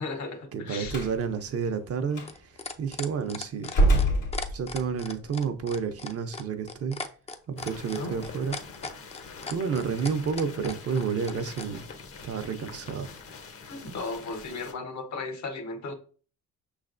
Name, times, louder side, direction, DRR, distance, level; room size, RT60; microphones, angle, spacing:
voice 1, 0.0-1.0 7.9-8.2 11.4-11.5 13.6-15.9, left 3 dB, 70° left, 1.0 m, -36 dB
voice 2, 0.5-2.2 2.8-3.7 4.5-7.0 7.5-8.6 9.5-11.9 12.2-13.1, right 6 dB, 50° right, 0.6 m, -30 dB
Slam, 0.8-1.2 2.1-2.3 3.6-4.9, right 1 dB, 85° left, 1.5 m, -24 dB
sound 1, 1.2-11.7 12.9-13.0, left 3 dB, 20° left, 0.5 m, -38 dB
sound 2, 7.6-14.7, left 5 dB, 50° left, 0.8 m, -44 dB
5.7 x 3.2 x 2.5 m
cardioid pair, 90°, 30 cm